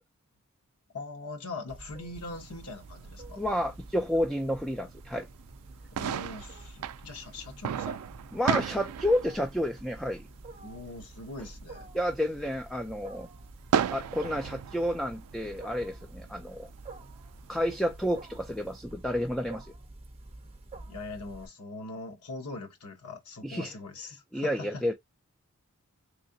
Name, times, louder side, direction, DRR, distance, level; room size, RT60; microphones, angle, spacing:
voice 1, 0.9-3.4 5.9-8.0 10.6-11.9 20.9-24.8, left 2 dB, 85° left, 0.9 m, -41 dB
Wild animals, 1.7-21.5, right 2 dB, 25° right, 0.7 m, -48 dB
sound 1, 2.2-18.8, right 8 dB, 80° right, 0.3 m, -38 dB
voice 2, 3.4-5.3 8.3-10.3 11.9-13.3 13.9-16.7 17.5-19.7 23.4-23.7 24.3-24.9, equal, ahead, 0.3 m, -30 dB
3.5 x 3.1 x 2.6 m
head